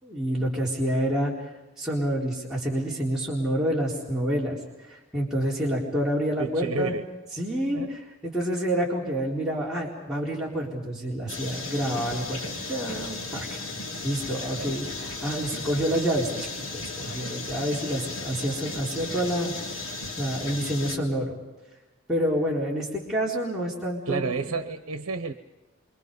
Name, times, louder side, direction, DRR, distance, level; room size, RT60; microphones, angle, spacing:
voice 1, 0.0-1.3 1.8-7.0 7.4-13.6 14.0-19.9 20.2-21.3 22.1-24.3, equal, 5° right, -7 dB, 3.9 m, -28 dB
voice 2, 6.4-7.1 7.7-7.9 14.6-14.7 24.1-25.3, right 4 dB, 85° right, 8 dB, 1.0 m, -30 dB
sound 1, 11.3-21.0, left 3 dB, 75° left, 3.4 m, -35 dB
28.5 x 25.5 x 5.4 m, 1.1 s
head